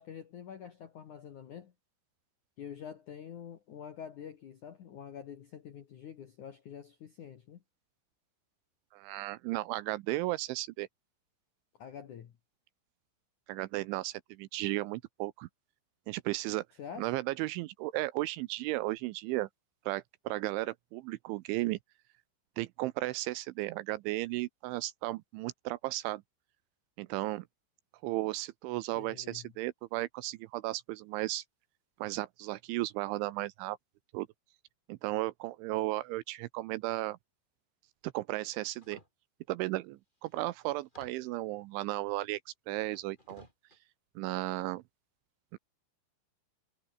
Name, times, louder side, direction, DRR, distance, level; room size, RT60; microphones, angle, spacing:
voice 1, 0.0-1.7 2.6-7.6 11.8-12.3 16.8-17.1 29.0-29.5, left 8 dB, 65° left, 2.0 m, -46 dB
voice 2, 8.9-10.9 13.5-15.5 16.1-16.6 17.0-19.5 19.9-21.8 22.6-26.2 27.0-27.5 28.0-31.4 32.0-33.8 34.1-34.3 34.9-37.2 38.0-39.0 39.5-43.5 44.2-44.8 45.5-45.6, right 18 dB, 80° right, 2.8 m, -35 dB
sound 1, 38.8-39.1 39.9-40.0 40.3-41.4 42.7-43.8, left 1 dB, 10° left, 6.7 m, -56 dB
omnidirectional pair, 6.0 m